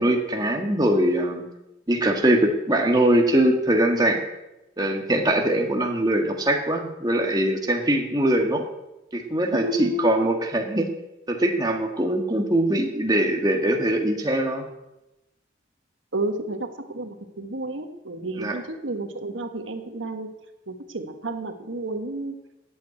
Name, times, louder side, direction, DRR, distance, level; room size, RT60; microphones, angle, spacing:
voice 1, 0.0-1.4 1.9-4.2 4.8-8.6 9.1-10.9 11.3-14.7 18.4-18.6, right 1 dB, 20° right, 2 dB, 1.7 m, -22 dB
voice 2, 9.5-10.2 16.1-20.3 20.7-22.3, right 2 dB, 85° right, 6 dB, 1.5 m, -31 dB
12.5 x 8.6 x 8.7 m, 0.95 s
head